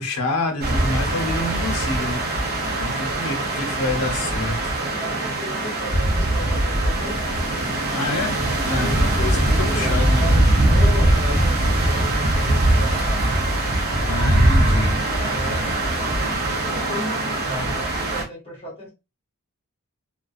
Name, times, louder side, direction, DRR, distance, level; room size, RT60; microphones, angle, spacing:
voice 1, 0.0-2.5 2.8-4.6 7.9-10.3 14.1-15.0, left 2 dB, 85° left, 0.8 m, -27 dB
sound 1, 0.6-18.2, right 1 dB, 45° right, 0.7 m, -21 dB
voice 2, 3.5-3.9 4.7-7.3 8.7-13.4 14.1-14.2 14.6-18.9, equal, 25° left, 0.8 m, -35 dB
sound 2, 5.6-13.5, right 1 dB, 75° right, 0.9 m, -35 dB
2.3 x 2.2 x 2.5 m
head